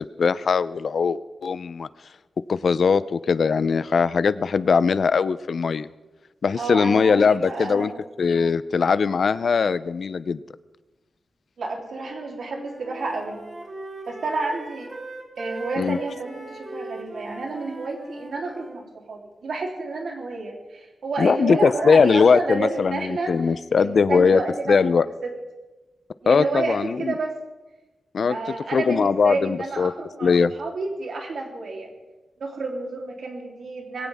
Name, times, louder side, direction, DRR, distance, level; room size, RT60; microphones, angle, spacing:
voice 1, 0.2-1.9 2.5-5.9 6.4-7.9 8.2-10.4 15.8-16.0 21.2-24.4 24.7-25.1 26.3-27.1 28.1-28.4 28.7-29.9 30.2-30.5, left 5 dB, 60° left, 16 dB, 0.5 m, -20 dB
voice 2, 6.6-8.0 11.6-13.4 14.1-14.9 15.4-25.3 26.2-27.4 28.3-30.3 30.6-31.9 32.4-34.1, right 3 dB, 70° right, 0 dB, 3.4 m, -30 dB
Wind instrument woodwind instrument, 12.1-18.8, right 2 dB, 35° right, 3.8 m, -39 dB
21.0 x 17.5 x 3.6 m, 1.1 s
wide cardioid pair, 155°, 0 cm